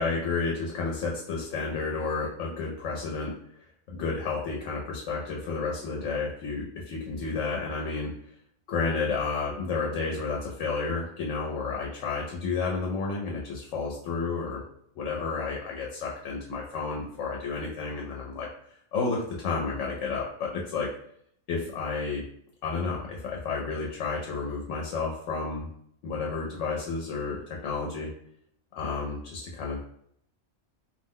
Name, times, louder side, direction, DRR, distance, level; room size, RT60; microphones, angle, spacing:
voice 1, 0.0-3.3 3.9-8.1 8.7-14.6 15.0-18.5 18.9-20.9 21.5-22.2 22.6-25.7 26.0-28.1 28.8-29.8, left 4 dB, 85° left, -2 dB, 0.9 m, -31 dB
2.5 x 2.0 x 3.5 m, 0.69 s
omnidirectional pair, 1.2 m